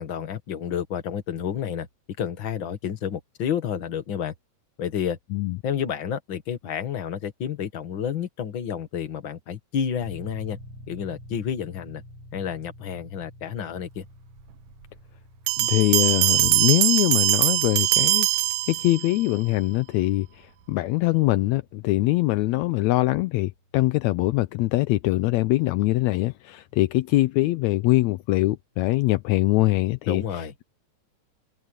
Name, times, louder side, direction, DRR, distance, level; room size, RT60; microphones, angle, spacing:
voice 1, 0.0-1.9 2.2-4.3 4.8-5.2 5.6-10.6 10.9-12.0 12.3-14.1 30.1-30.5, left 8 dB, 45° left, 2.1 m, -30 dB
sound 1, 10.0-24.4, left 1 dB, 50° right, 4.9 m, -49 dB
Bell, 15.5-19.2, right 17 dB, 75° right, 2.1 m, -22 dB
voice 2, 15.6-18.3 18.7-30.6, left 18 dB, 80° left, 1.7 m, -23 dB
open air
omnidirectional pair, 3.6 m